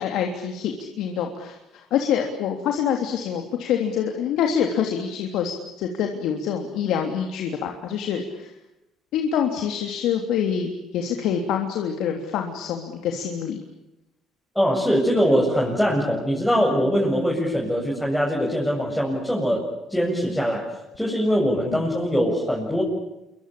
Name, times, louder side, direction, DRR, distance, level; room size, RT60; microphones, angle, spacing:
voice 1, 0.0-5.5 5.8-8.5 9.1-13.6 21.7-21.8, left 8 dB, 75° left, 3 dB, 3.3 m, -26 dB
voice 2, 14.5-19.6 19.9-20.7 21.0-22.8, equal, ahead, -5 dB, 7.7 m, -22 dB
28.0 x 24.5 x 8.7 m, 0.92 s
cardioid pair, 90°, 0 cm